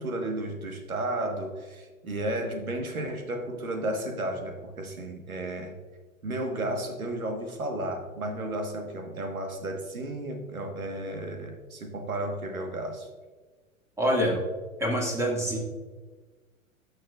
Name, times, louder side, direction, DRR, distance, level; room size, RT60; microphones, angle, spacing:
voice 1, 0.0-5.8 6.2-13.1, right 1 dB, 90° right, 4 dB, 1.6 m, -33 dB
voice 2, 14.0-14.4 14.8-15.6, equal, 5° right, -1 dB, 2.0 m, -25 dB
13.0 x 6.4 x 2.4 m, 1.3 s
hypercardioid pair, 110°, 41 cm